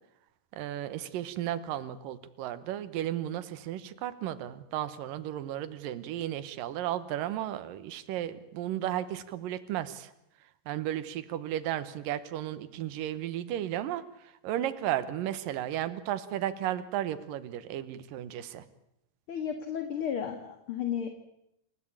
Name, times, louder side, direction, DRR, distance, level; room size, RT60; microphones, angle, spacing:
voice 1, 0.6-10.1 10.7-14.0 14.4-18.6, right 12 dB, 85° right, 12 dB, 2.8 m, -34 dB
voice 2, 19.3-21.1, left 8 dB, 45° left, 6 dB, 2.2 m, -33 dB
28.5 x 16.0 x 8.8 m, 0.81 s
omnidirectional pair, 3.9 m